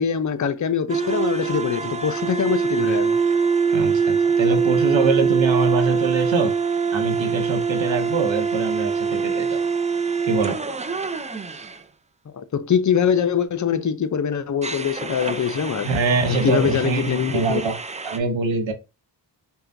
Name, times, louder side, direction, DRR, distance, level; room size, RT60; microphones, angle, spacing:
voice 1, 0.0-3.2 12.3-15.9 16.4-17.6, left 7 dB, 40° left, 0.5 m, -23 dB
sound 1, 0.9-11.8 14.6-18.2, right 5 dB, 15° right, 0.4 m, -24 dB
voice 2, 3.7-6.5 6.9-9.6 10.3-10.6 15.8-17.8 18.0-18.7, right 4 dB, 85° right, 0.8 m, -24 dB
5.4 x 2.3 x 2.6 m
cardioid pair, 50°, 44 cm